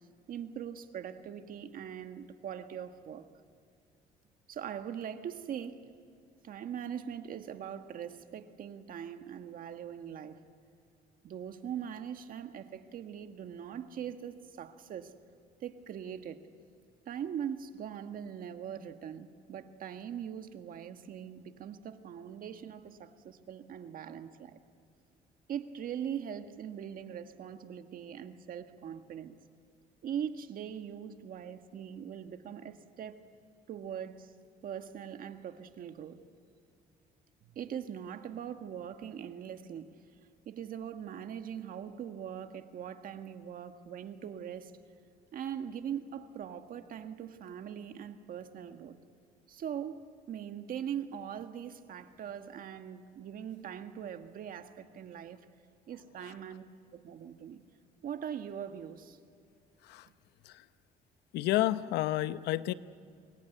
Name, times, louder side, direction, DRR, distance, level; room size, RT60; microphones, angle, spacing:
voice 1, 0.3-3.3 4.5-5.9 6.4-10.4 11.2-15.1 15.6-16.4 17.0-24.6 25.5-29.4 30.0-33.3 33.7-34.3 34.6-36.2 37.4-40.0 40.4-44.7 45.3-49.0 49.5-55.4 55.9-56.6 56.9-57.6 58.0-59.2, right 9 dB, 55° right, 8 dB, 1.7 m, -41 dB
voice 2, 61.3-62.7, left 15 dB, 85° left, 14 dB, 0.8 m, -30 dB
27.0 x 21.5 x 9.3 m, 2.3 s
cardioid pair, 110°, 17 cm